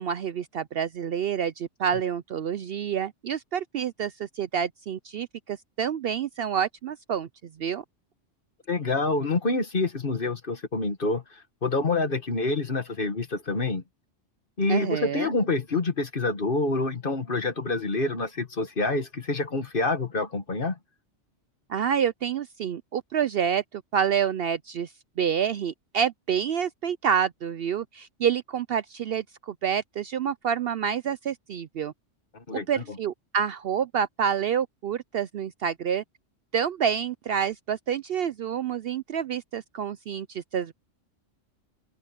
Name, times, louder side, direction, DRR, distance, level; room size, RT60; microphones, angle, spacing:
voice 1, 0.0-7.3 7.6-7.8 14.7-15.3 21.7-31.9 32.5-36.0 36.5-40.7, right 8 dB, 60° right, 0.7 m, -28 dB
voice 2, 8.7-11.2 11.6-13.8 14.6-20.8 32.5-32.7, left 3 dB, 45° left, 1.8 m, -27 dB
open air
omnidirectional pair, 1.3 m